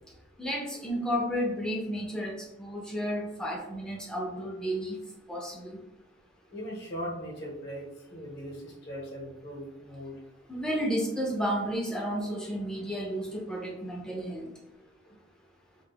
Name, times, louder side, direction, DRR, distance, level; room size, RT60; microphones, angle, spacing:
voice 1, 0.4-5.0 5.3-5.8 10.5-14.5, equal, 5° left, -3 dB, 0.5 m, -32 dB
voice 2, 6.5-10.2, equal, 55° left, -3 dB, 0.8 m, -39 dB
2.2 x 2.0 x 3.3 m, 0.93 s
head